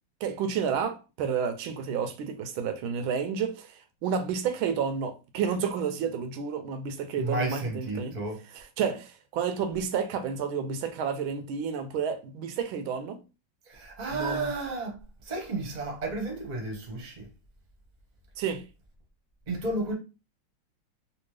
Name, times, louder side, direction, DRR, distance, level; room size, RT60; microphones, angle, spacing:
voice 1, 0.2-3.7 4.0-8.1 8.5-13.2 14.1-14.5 18.4-18.6, right 6 dB, 85° right, 1.5 m, -30 dB
voice 2, 7.2-8.4 13.7-15.0 15.2-17.3 19.5-19.9, right 2 dB, 30° right, 0.9 m, -32 dB
3.4 x 2.8 x 3.2 m
omnidirectional pair, 2.1 m